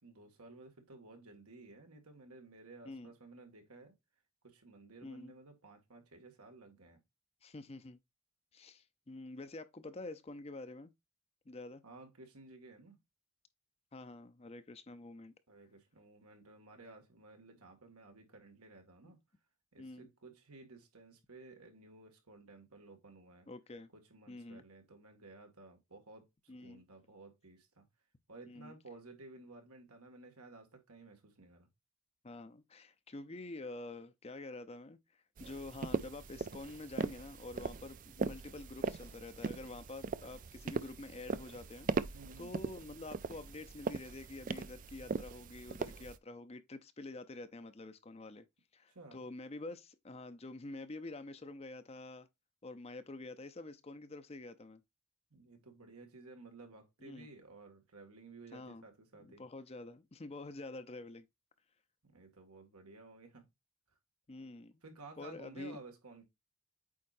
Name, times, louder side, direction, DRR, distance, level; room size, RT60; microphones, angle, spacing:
voice 1, 0.0-4.0 4.4-7.0 11.8-13.0 15.5-19.2 19.7-23.5 23.9-27.9 28.3-31.7 42.1-42.6 48.9-49.2 55.3-59.4 62.0-63.5 64.8-66.2, right 3 dB, 85° right, 2.1 m, -55 dB
voice 2, 5.0-5.3 7.4-8.0 8.5-10.9 11.5-11.8 13.9-15.3 19.0-19.1 19.8-20.1 23.5-23.9 24.3-24.6 26.5-26.8 28.5-28.8 32.2-35.0 35.4-41.9 42.4-48.5 48.7-52.3 52.6-54.8 57.0-57.3 58.5-58.8 59.2-61.3 64.3-64.7 65.2-65.8, left 2 dB, 25° left, 0.5 m, -47 dB
sound 1, 35.4-46.2, right 4 dB, 35° right, 0.3 m, -40 dB
8.5 x 4.4 x 2.6 m
head